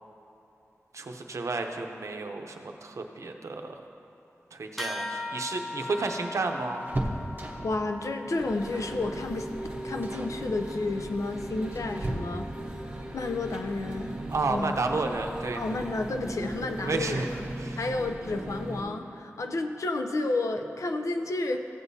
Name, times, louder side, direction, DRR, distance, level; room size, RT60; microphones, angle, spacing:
voice 1, 0.9-3.7 4.5-6.9 14.3-15.6 16.8-17.3 17.6-17.9, right 3 dB, 70° right, 4 dB, 0.7 m, -31 dB
sound 1, 4.8-14.6, left 2 dB, ahead, 0.6 m, -42 dB
sound 2, 5.2-7.9 8.7-9.1 9.3-9.6 10.0-10.4 11.2-12.7 14.4-14.5 14.9-15.0 16.2-16.6 16.9-17.0 17.3-17.5, right 1 dB, 40° right, 0.9 m, -37 dB
voice 2, 7.6-9.5 9.8-12.5 13.1-14.1 14.5-14.7 15.6-17.3 17.8-21.6, left 2 dB, 75° left, 6 dB, 0.6 m, -31 dB
sound 3, 8.4-18.8, right 1 dB, 20° right, 1.3 m, -38 dB
15.0 x 8.0 x 2.7 m, 2.8 s
wide cardioid pair, 80°, 5 cm